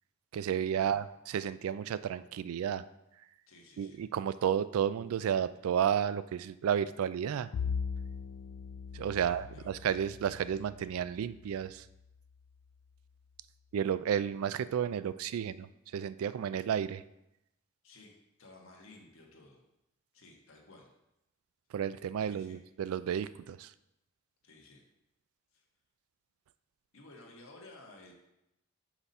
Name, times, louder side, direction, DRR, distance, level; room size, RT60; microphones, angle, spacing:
voice 1, 0.3-2.8 3.8-7.5 8.9-11.9 13.7-17.0 21.7-23.7, right 8 dB, 80° right, 15 dB, 0.3 m, -32 dB
voice 2, 3.5-4.0 9.2-9.7 17.8-18.1 18.4-19.6 20.1-20.9 22.2-22.6 24.4-24.8 25.5-25.6 26.9-28.1, left 2 dB, 70° left, 0 dB, 1.4 m, -55 dB
Bowed string instrument, 7.5-12.1, left 6 dB, 85° left, 0.3 m, -40 dB
5.8 x 4.1 x 5.4 m, 0.87 s
head